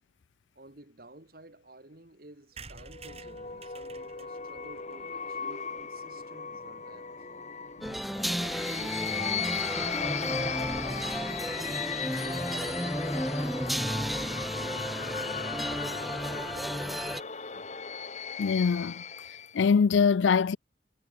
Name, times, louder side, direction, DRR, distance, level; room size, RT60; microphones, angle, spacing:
voice 1, 0.5-7.5 8.2-11.1 12.1-16.5, right 1 dB, 50° right, 2.2 m, -52 dB
sound 1, 2.6-6.2 6.7-6.8 7.0-7.1 7.3-7.4 7.6-7.8, right 4 dB, 35° right, 7.1 m, -51 dB
sound 2, 2.8-19.6, left 6 dB, 40° left, 1.3 m, -37 dB
sound 3, 7.8-17.2, equal, ahead, 0.6 m, -33 dB
voice 2, 18.4-19.0 19.5-20.6, left 5 dB, 80° left, 0.4 m, -23 dB
head